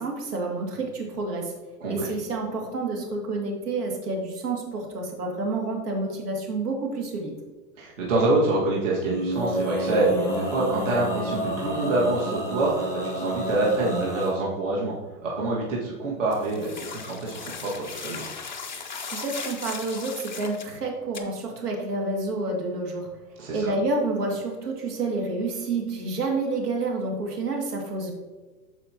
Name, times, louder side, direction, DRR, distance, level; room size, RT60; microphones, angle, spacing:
voice 1, 0.0-1.5 1.9-7.4 19.1-23.1 23.5-28.1, right 3 dB, 70° right, 1 dB, 2.4 m, -29 dB
voice 2, 7.8-14.9 15.2-18.2 23.4-23.7, right 2 dB, 50° right, -4 dB, 1.9 m, -26 dB
Male singing, 9.0-14.3, right 1 dB, 5° right, 1.2 m, -30 dB
sound 1, 16.3-20.7 21.1-21.2, left 5 dB, 30° left, 0.4 m, -37 dB
13.5 x 4.7 x 2.9 m, 1.3 s
hypercardioid pair, 180°, 48 cm